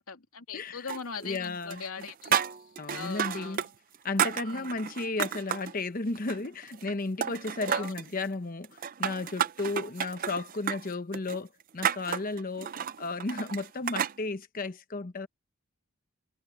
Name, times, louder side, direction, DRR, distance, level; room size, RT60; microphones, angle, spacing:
voice 1, 0.0-2.4 2.9-3.7 4.5-4.7 7.7-7.9, left 5 dB, 85° left, 2.7 m, -40 dB
voice 2, 0.5-0.9 1.2-1.8 2.8-3.6 4.0-12.7 13.0-15.3, left 3 dB, 40° left, 0.9 m, -34 dB
sound 1, 0.9-1.4 1.7-3.7 3.9-5.7 6.1-6.9 7.2-8.1 8.6-14.2, right 8 dB, 40° right, 0.4 m, -32 dB
head